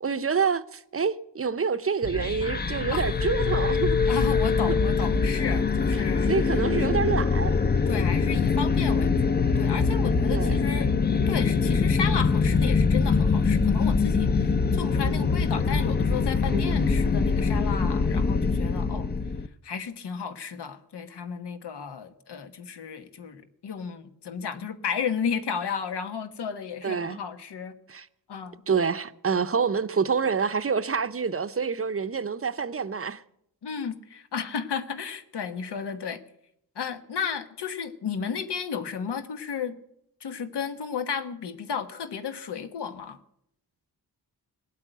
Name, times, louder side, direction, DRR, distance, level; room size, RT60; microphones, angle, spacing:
voice 1, 0.0-4.1 6.3-7.5 10.3-10.6 16.5-17.0 26.8-27.2 27.9-28.1 28.7-33.2, right 6 dB, 35° right, 0.6 m, -27 dB
sound 1, 2.0-19.5, left 4 dB, 25° left, 0.5 m, -23 dB
voice 2, 4.1-6.9 7.9-19.1 19.6-27.7 28.3-28.6 33.6-36.2 36.7-39.7 40.2-43.2, left 6 dB, 85° left, 1.4 m, -33 dB
18.5 x 8.4 x 9.1 m
wide cardioid pair, 115°, 39 cm